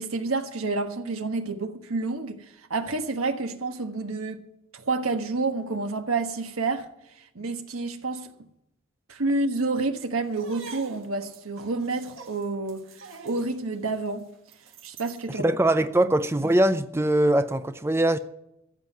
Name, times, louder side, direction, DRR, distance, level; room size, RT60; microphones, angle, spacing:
voice 1, 0.0-4.4 4.7-6.9 7.2-8.3 9.1-14.2 14.8-15.4 16.0-16.1, right 3 dB, 90° right, 1.4 m, -29 dB
sound 1, 10.3-15.3, right 4 dB, 70° right, 1.6 m, -46 dB
voice 2, 15.3-18.2, right 1 dB, 10° right, 0.4 m, -22 dB
14.5 x 7.7 x 8.2 m
head